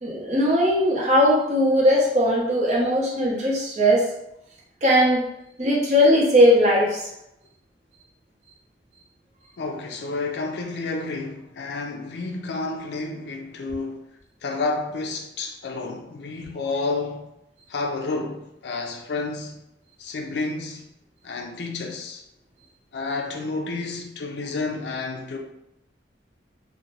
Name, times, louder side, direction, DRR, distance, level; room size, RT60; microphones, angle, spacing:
voice 1, 0.0-4.0 4.8-5.2 5.6-7.0, equal, 40° right, 0.7 m, -19 dB
voice 2, 9.6-14.0 14.4-17.3 17.7-19.6 20.0-20.8 21.2-22.2 22.9-25.4, left 3 dB, 70° left, 0.4 m, -30 dB
2.5 x 2.1 x 3.0 m
head